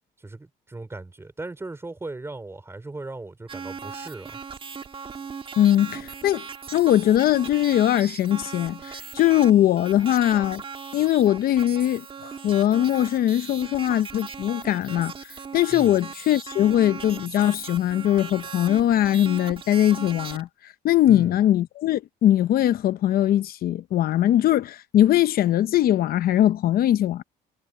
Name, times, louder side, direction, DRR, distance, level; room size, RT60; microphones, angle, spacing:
voice 1, 0.2-4.4 15.7-16.0 21.1-21.4, right 2 dB, 15° right, 4.0 m, -38 dB
sound 1, 3.5-20.4, right 5 dB, 30° right, 1.8 m, -38 dB
voice 2, 5.6-6.4 6.7-10.6 10.9-27.2, left 12 dB, 60° left, 0.8 m, -21 dB
cardioid pair, 110°, 17 cm